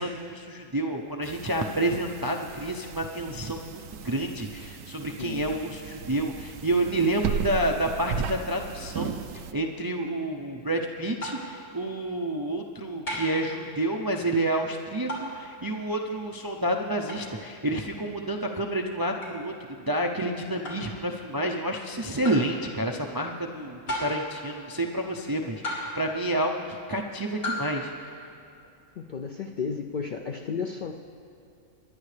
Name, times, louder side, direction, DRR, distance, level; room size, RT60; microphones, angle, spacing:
voice 1, 0.0-27.9, right 1 dB, 35° right, 2 dB, 0.3 m, -29 dB
sound 1, 1.2-9.5, right 7 dB, 85° right, 1.0 m, -36 dB
voice 2, 5.2-5.5 29.0-30.9, left 5 dB, 65° left, 3 dB, 0.5 m, -33 dB
sound 2, 11.2-11.5 13.1-13.5 15.1-15.4 17.1-17.3 19.2-19.4 20.6-20.9 22.2-22.5 23.9-24.3 25.6-26.1 27.4-27.7, left 1 dB, 80° left, 3.7 m, -33 dB
23.5 x 10.5 x 3.3 m, 2.7 s
omnidirectional pair, 1.4 m